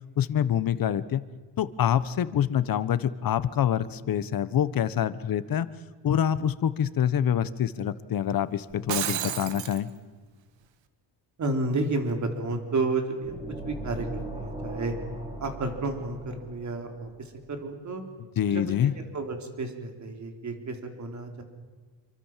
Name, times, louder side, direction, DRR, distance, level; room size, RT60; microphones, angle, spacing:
voice 1, 0.2-1.2 1.6-5.7 6.0-9.9 18.4-18.9, left 9 dB, 50° left, 15 dB, 1.2 m, -26 dB
Shatter, 8.7-9.8, right 11 dB, 75° right, 1.9 m, -31 dB
voice 2, 11.4-13.4 13.6-14.9 15.4-18.0 18.5-21.4, right 3 dB, 40° right, 5 dB, 3.9 m, -31 dB
sound 1, 13.2-17.0, right 1 dB, 10° right, 4.0 m, -38 dB
27.5 x 24.0 x 7.5 m, 1.4 s
cardioid pair, 155°, 45 cm